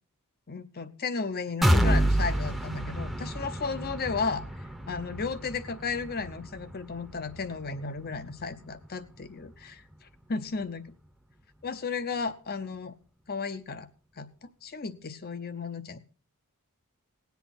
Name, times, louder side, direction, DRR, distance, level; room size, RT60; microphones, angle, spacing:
voice 1, 0.5-4.4 4.9-10.8 11.6-12.9 13.3-13.9 14.2-14.3 14.6-16.0, left 4 dB, 45° left, 12 dB, 0.8 m, -34 dB
sound 1, 1.6-9.4 9.8-9.9 10.3-10.4, equal, ahead, 0.9 m, -29 dB
19.0 x 8.3 x 4.1 m, 0.39 s
head